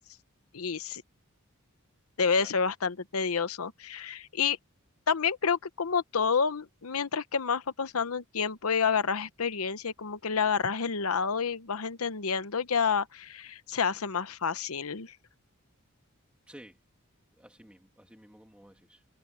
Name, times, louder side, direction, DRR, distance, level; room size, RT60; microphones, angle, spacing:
voice 1, 0.5-1.0 2.2-4.6 5.1-15.1, left 6 dB, 80° left, 0.9 m, -29 dB
voice 2, 16.5-16.8 17.3-19.0, equal, 5° right, 2.1 m, -53 dB
head